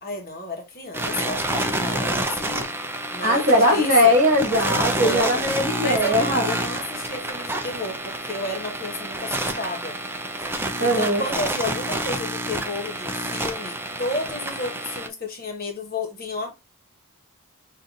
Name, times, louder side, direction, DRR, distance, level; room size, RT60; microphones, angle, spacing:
voice 1, 0.0-2.7 3.1-4.1 4.9-5.4 5.8-9.9 10.8-16.5, left 2 dB, 45° left, 1.2 m, -31 dB
sound 1, 0.9-15.1, right 1 dB, 10° right, 0.4 m, -28 dB
voice 2, 3.2-6.5 10.8-11.2, equal, 35° right, 2.1 m, -19 dB
5.5 x 2.6 x 2.5 m
head